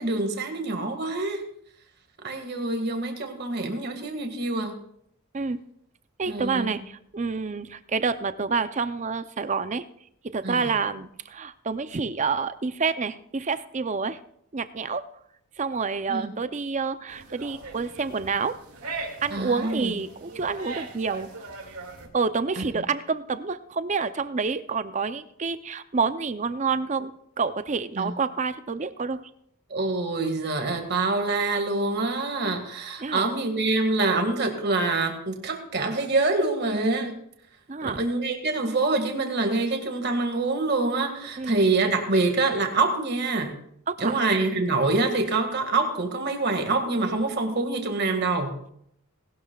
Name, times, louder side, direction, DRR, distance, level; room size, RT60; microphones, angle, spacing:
voice 1, 0.0-1.4 2.2-4.7 6.3-6.7 10.4-10.7 16.1-16.3 19.3-19.9 22.6-22.8 28.0-28.1 29.7-37.2 37.8-43.5 44.0-48.6, right 3 dB, 50° right, 5 dB, 1.9 m, -26 dB
voice 2, 6.2-9.8 10.3-14.2 14.5-15.0 15.6-18.6 19.2-21.3 22.1-29.3 33.0-33.3 37.7-38.0 41.4-41.6 43.9-44.2, right 5 dB, 35° right, 12 dB, 0.5 m, -28 dB
sound 1, 17.1-22.1, right 3 dB, 90° right, 2.2 m, -39 dB
19.0 x 12.0 x 2.3 m, 0.71 s
head